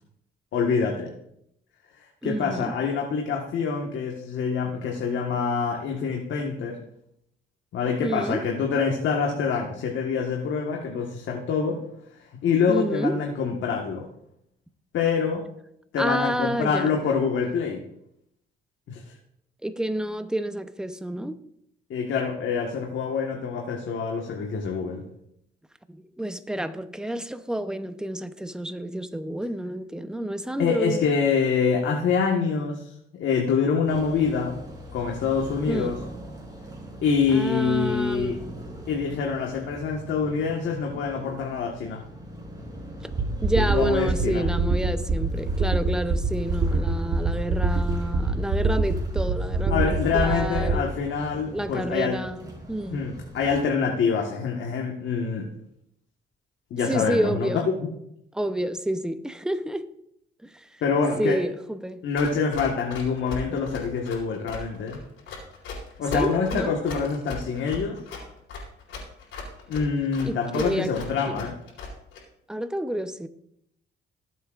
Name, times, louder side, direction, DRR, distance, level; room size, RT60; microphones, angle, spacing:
voice 1, 0.5-1.1 2.0-6.8 7.7-11.8 12.4-14.1 14.9-15.4 15.9-17.8 18.9-19.0 21.9-25.0 30.6-34.6 34.9-36.0 37.0-38.4 38.9-42.0 43.5-44.4 49.7-52.2 52.9-55.5 56.7-57.5 60.8-61.4 62.0-65.0 66.0-68.0 69.7-71.5, left 5 dB, 75° left, 1.6 m, -26 dB
voice 2, 2.2-2.7 8.0-8.4 12.7-13.2 16.0-17.0 19.6-21.4 25.9-31.0 35.7-36.0 37.3-38.6 43.4-50.9 51.3-53.1 56.9-57.7 58.3-59.9 60.4-60.8 61.2-62.0 63.5-63.6 66.1-66.7 70.2-70.9 71.3-71.4 72.5-73.3, right 1 dB, 5° right, 0.8 m, -29 dB
sound 1, 33.8-53.6, equal, 20° right, 3.6 m, -42 dB
sound 2, 43.1-50.8, right 3 dB, 60° right, 1.2 m, -25 dB
Run, 62.2-72.2, left 4 dB, 90° left, 4.3 m, -37 dB
18.5 x 8.1 x 2.5 m
cardioid pair, 90°, 20 cm